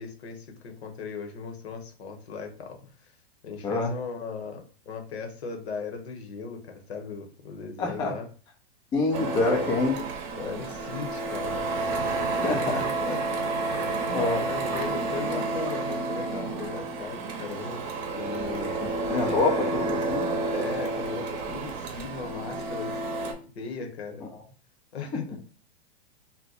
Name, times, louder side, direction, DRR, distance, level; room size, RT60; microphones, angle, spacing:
voice 1, 0.0-3.1 3.4-8.3 10.3-11.7 12.6-13.2 14.1-14.2 14.5-17.8 18.1-18.7 19.1-19.5 20.5-22.9 23.2-24.3 24.9-25.4, left 5 dB, 75° left, 4 dB, 0.9 m, -38 dB
voice 2, 3.6-3.9 7.8-8.1 8.9-10.0 12.3-12.8 14.1-14.5 19.1-20.3, left 3 dB, 15° left, 1 dB, 0.4 m, -26 dB
Printer, 9.1-23.3, right 3 dB, 40° right, 0.7 m, -30 dB
2.6 x 2.1 x 4.0 m, 0.40 s
hypercardioid pair, 130°, 32 cm